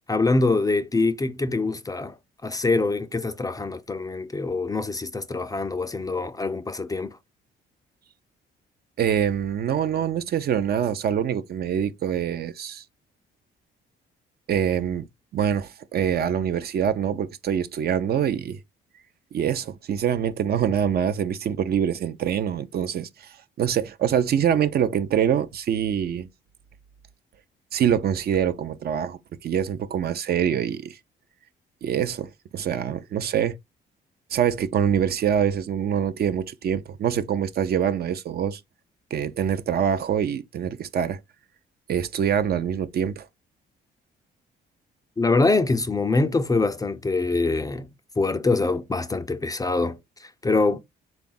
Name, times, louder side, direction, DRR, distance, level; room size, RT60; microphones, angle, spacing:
voice 1, 0.1-2.2 2.4-7.2 45.2-47.9 48.2-50.8, left 3 dB, 20° left, 0.4 m, -24 dB
voice 2, 9.0-12.8 14.5-15.1 15.3-18.6 19.3-23.3 23.6-26.3 27.7-31.0 31.8-33.6 34.3-38.6 39.1-41.2 41.9-43.3, right 8 dB, 55° right, 0.5 m, -25 dB
3.5 x 2.4 x 3.8 m
cardioid pair, 90°, 20 cm